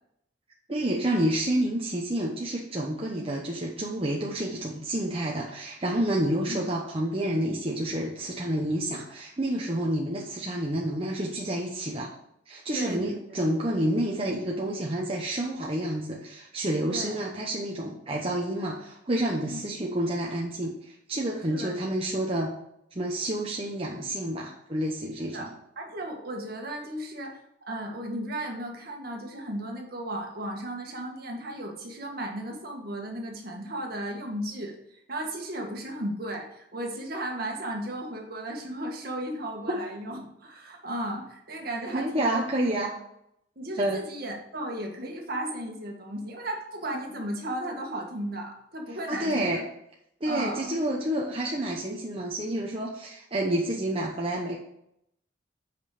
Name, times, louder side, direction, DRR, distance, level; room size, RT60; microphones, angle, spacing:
voice 1, 0.7-12.1 12.5-22.6 22.9-25.5 39.7-39.8 41.9-42.9 43.8-44.0 49.1-49.6 50.2-54.6, right 1 dB, 30° right, -2 dB, 0.9 m, -29 dB
voice 2, 12.7-13.4 16.9-17.2 19.4-19.6 21.5-21.7 25.3-27.4 27.7-42.4 43.5-49.6 50.2-50.7, right 1 dB, 50° right, 1 dB, 1.7 m, -35 dB
8.3 x 5.3 x 5.0 m, 0.76 s
head